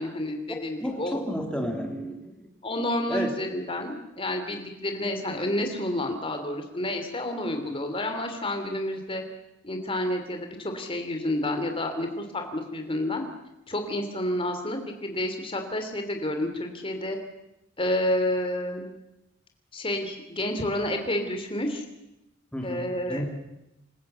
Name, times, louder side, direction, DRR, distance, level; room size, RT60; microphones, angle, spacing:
voice 1, 0.0-1.2 2.6-9.2 9.6-13.2 13.7-17.2 17.8-18.9 19.7-21.8 22.6-23.2, left 1 dB, 25° left, 5 dB, 3.2 m, -29 dB
voice 2, 0.8-2.3 3.1-3.3 22.5-23.3, equal, 5° left, 1 dB, 3.6 m, -31 dB
27.5 x 15.5 x 8.2 m, 0.91 s
head